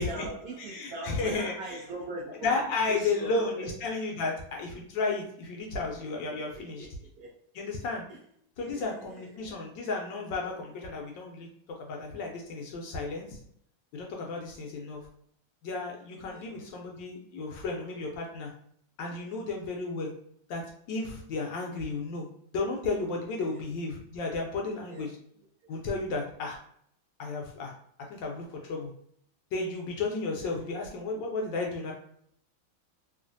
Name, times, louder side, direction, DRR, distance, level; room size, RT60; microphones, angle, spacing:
voice 1, 0.0-3.7 4.0-4.1 6.5-7.3 8.1-8.2 8.6-9.5 16.3-16.5 23.5-23.6 24.9-25.1 25.6-25.7, right 1 dB, 55° right, -6 dB, 1.2 m, -41 dB
voice 2, 0.6-1.5 2.4-6.9 7.6-8.0 8.6-11.5 11.8-13.4 13.9-15.0 15.6-18.5 19.0-20.1 20.5-22.3 22.5-25.1 25.7-26.6 27.2-27.7 28.1-28.9 29.5-31.9, left 3 dB, 75° left, 0 dB, 1.2 m, -33 dB
3.1 x 2.4 x 2.5 m, 0.67 s
omnidirectional pair, 2.2 m